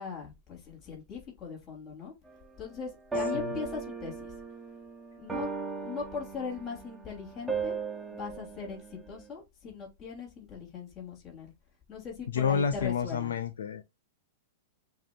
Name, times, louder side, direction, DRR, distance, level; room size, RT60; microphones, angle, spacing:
voice 1, 0.0-2.1 2.6-4.3 5.2-5.5 5.8-7.7 8.1-11.5 11.9-13.3, left 5 dB, 30° left, 2.9 m, -40 dB
sound 1, 2.3-2.4 3.1-9.3, right 3 dB, 5° right, 1.4 m, -37 dB
voice 2, 12.3-13.8, left 7 dB, 75° left, 0.5 m, -29 dB
7.2 x 3.0 x 2.4 m
hypercardioid pair, 105°, 0 cm